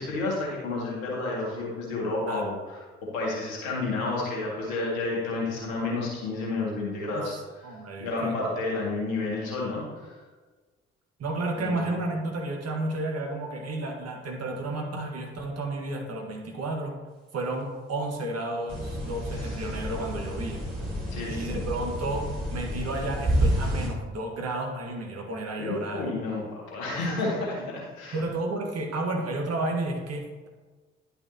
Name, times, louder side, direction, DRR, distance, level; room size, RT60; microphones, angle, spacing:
voice 1, 0.0-2.6 3.0-7.3 8.0-10.2 11.6-11.9 19.4-19.7 21.1-21.6 25.6-28.2, left 3 dB, 75° left, -4 dB, 2.2 m, -30 dB
voice 2, 7.6-8.4 11.2-17.0 17.3-20.6 21.3-22.2 22.5-26.1 27.3-27.4 28.1-30.5, right 2 dB, 50° right, 2 dB, 1.6 m, -32 dB
sound 1, 18.7-23.9, equal, 75° right, 1.8 m, -29 dB
10.5 x 5.7 x 2.9 m, 1.3 s
figure-of-eight pair, 40°, 33 cm